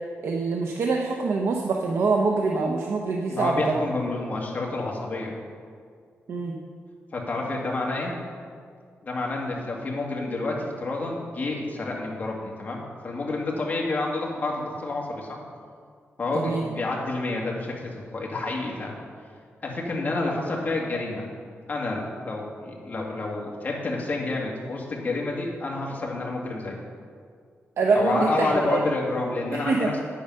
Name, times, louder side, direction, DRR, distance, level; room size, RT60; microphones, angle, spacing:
voice 1, 0.2-3.8 6.3-6.6 16.3-16.7 27.8-28.8 29.5-29.9, right 4 dB, 70° right, 1 dB, 0.8 m, -25 dB
voice 2, 3.3-5.3 7.1-8.2 9.0-15.4 16.2-18.9 19.6-21.3 21.7-26.8 27.9-29.9, left 2 dB, 35° left, -2 dB, 2.1 m, -29 dB
10.0 x 8.7 x 5.5 m, 2.1 s
wide cardioid pair, 150°, 5 cm